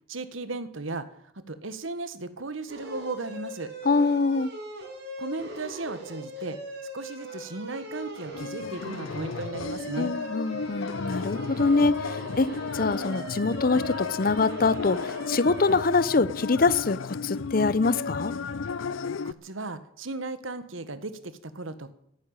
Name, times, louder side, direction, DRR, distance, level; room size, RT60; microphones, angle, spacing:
voice 1, 0.1-1.1 1.5-3.7 5.2-6.6 6.9-10.1 19.2-21.9, right 3 dB, 85° right, 1.6 m, -36 dB
sound 1, 2.7-15.8, equal, 60° right, 5.5 m, -40 dB
voice 2, 3.8-4.5 10.0-18.3, left 3 dB, 45° left, 0.6 m, -24 dB
sound 2, 8.3-19.3, left 5 dB, 90° left, 0.5 m, -34 dB
14.5 x 11.0 x 9.0 m
head